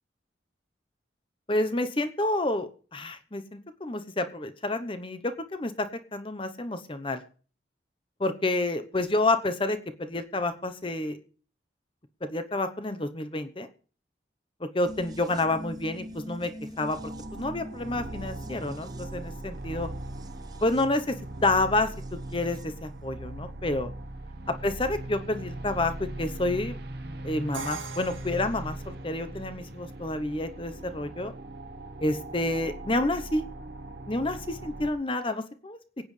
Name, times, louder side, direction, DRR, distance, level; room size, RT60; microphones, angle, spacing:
voice 1, 1.5-5.9 6.1-7.2 8.2-11.2 12.2-13.7 14.7-16.5 16.8-17.0 17.3-19.9 20.6-21.2 21.4-21.9 22.3-23.9 24.6-26.8 27.2-31.3 32.0-33.5 34.1-35.8, left 2 dB, 25° left, 10 dB, 0.9 m, -29 dB
sound 1, 14.9-22.8 23.0-23.1, equal, 20° right, 0.7 m, -45 dB
sound 2, 16.9-34.9, right 1 dB, 55° right, 1.1 m, -40 dB
Crash cymbal, 27.5-29.5, right 4 dB, 85° right, 2.3 m, -40 dB
24.0 x 8.7 x 3.3 m, 0.40 s
head